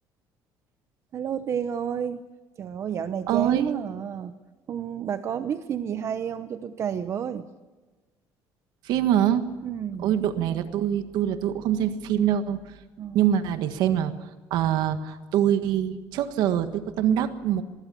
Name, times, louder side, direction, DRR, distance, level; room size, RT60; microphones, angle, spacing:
voice 1, 1.1-2.2 2.6-4.3 4.7-7.5 9.6-10.1 13.0-13.5, right 8 dB, 40° right, 11 dB, 0.9 m, -30 dB
voice 2, 3.3-3.7 8.8-9.5 10.0-12.8 13.1-14.1 14.5-17.6, right 10 dB, 75° right, 9 dB, 1.6 m, -24 dB
25.0 x 21.5 x 7.0 m, 1.3 s
cardioid pair, 150°, 7 cm